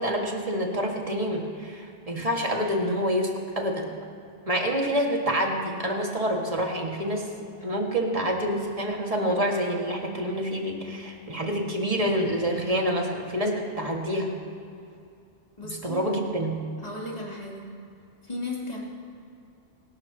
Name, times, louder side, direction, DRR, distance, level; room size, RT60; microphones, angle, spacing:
voice 1, 0.0-4.0 4.5-7.3 7.6-14.3 15.6-16.6, equal, 30° right, 0 dB, 1.9 m, -27 dB
voice 2, 15.6-16.1 16.8-17.7 18.2-18.8, left 2 dB, 35° left, -4 dB, 3.1 m, -35 dB
27.0 x 12.5 x 2.9 m, 2.5 s
omnidirectional pair, 1.2 m